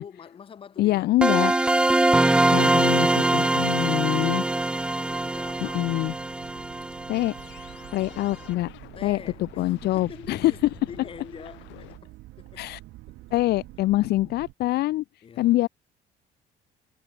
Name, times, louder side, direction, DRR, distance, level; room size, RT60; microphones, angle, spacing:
voice 1, 0.0-1.5 4.4-5.9 9.0-12.7 13.1-13.2 15.2-15.6, left 7 dB, 30° left, 3.5 m, -45 dB
voice 2, 0.8-1.5 2.5-4.4 5.6-6.1 7.1-7.3 7.9-8.7 9.0-10.5 12.6-12.8 13.3-15.0 15.4-15.7, left 16 dB, 60° left, 0.8 m, -24 dB
sound 1, 1.2-7.9, right 2 dB, 5° right, 0.4 m, -23 dB
sound 2, 3.8-5.0 6.9-12.0, left 18 dB, 90° left, 4.2 m, -50 dB
sound 3, 4.4-14.5, right 18 dB, 85° right, 1.9 m, -48 dB
cardioid pair, 175°, 18 cm